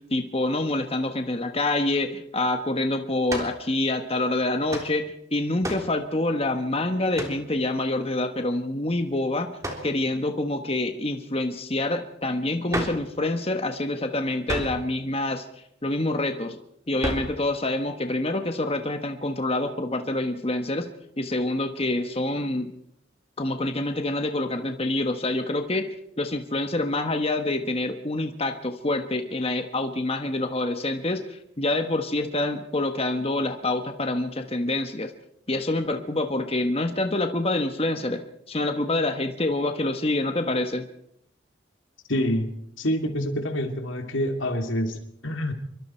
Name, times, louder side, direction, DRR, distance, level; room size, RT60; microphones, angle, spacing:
voice 1, 0.1-9.5 9.8-16.6 16.9-20.9 21.2-22.7 23.4-25.9 26.2-35.1 35.5-40.9, left 2 dB, 30° left, 6 dB, 1.3 m, -26 dB
sound 1, 3.3-3.6 4.7-4.9 5.6-5.9 7.1-7.4 9.6-9.9 12.7-13.1 14.5-14.8 17.0-17.4, right 1 dB, 15° right, 3.5 m, -31 dB
voice 2, 42.1-42.5 42.8-45.5, equal, 85° left, 5 dB, 2.8 m, -27 dB
26.0 x 23.5 x 4.5 m, 0.74 s
head